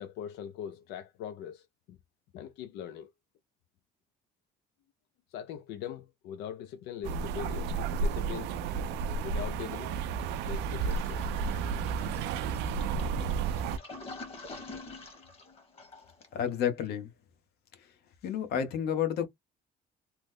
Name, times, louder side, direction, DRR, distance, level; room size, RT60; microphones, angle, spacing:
voice 1, 0.0-2.0 2.3-3.1 5.3-8.6 9.2-9.9 10.4-11.3, left 9 dB, 85° left, 0.4 m, -41 dB
sound 1, 7.0-13.8, right 5 dB, 90° right, 0.4 m, -32 dB
Toilet flush, 10.8-16.5, left 3 dB, 35° left, 1.3 m, -47 dB
voice 2, 16.3-17.1 18.2-19.3, left 9 dB, 70° left, 0.9 m, -30 dB
3.0 x 2.0 x 3.5 m
cardioid pair, 110°, 17 cm